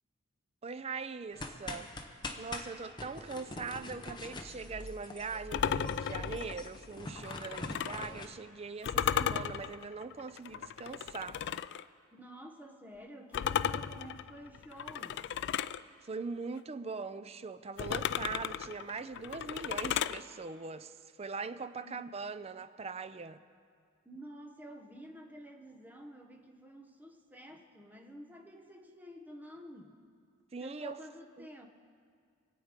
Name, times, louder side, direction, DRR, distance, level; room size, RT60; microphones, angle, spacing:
voice 1, 0.6-11.4 16.0-23.4 30.5-31.0 31.4-31.5, right 4 dB, 30° right, 0.4 m, -41 dB
sound 1, 1.3-8.3, left 2 dB, 20° left, 0.9 m, -44 dB
sound 2, 5.5-8.1 8.8-11.8 13.3-15.8 17.8-20.2, left 8 dB, 60° left, 0.3 m, -35 dB
voice 2, 12.2-15.2 21.8-22.1 24.0-30.0 30.6-31.7, equal, 10° right, 1.2 m, -50 dB
25.0 x 8.6 x 5.1 m
head